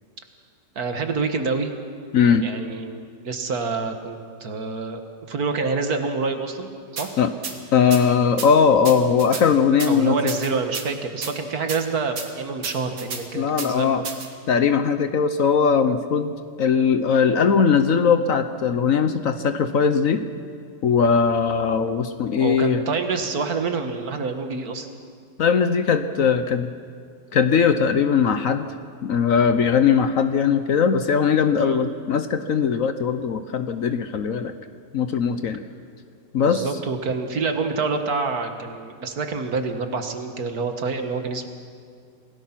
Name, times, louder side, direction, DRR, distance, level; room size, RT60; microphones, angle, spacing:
voice 1, 0.8-1.7 2.4-5.0 5.3-6.7 7.0-7.1 9.9-14.0 22.3-24.9 31.6-31.8 36.4-41.5, right 4 dB, 60° right, 6 dB, 1.9 m, -27 dB
voice 2, 2.1-2.5 7.2-7.3 7.7-10.3 13.3-14.0 14.5-20.2 20.8-22.8 25.4-26.7 27.3-28.7 29.0-34.5 34.9-35.6 36.3-36.7, left 6 dB, 60° left, 9 dB, 1.1 m, -20 dB
sound 1, 7.0-7.1 7.4-7.5 7.9-8.0 8.4-8.5 8.8-9.4 9.8-9.9 10.3-10.9 11.2-11.3 11.7-11.8 12.2-12.3 12.6-13.2 13.6-13.7 14.0-14.3, right 5 dB, 80° right, 2.4 m, -31 dB
26.5 x 17.5 x 5.9 m, 2.2 s
omnidirectional pair, 1.8 m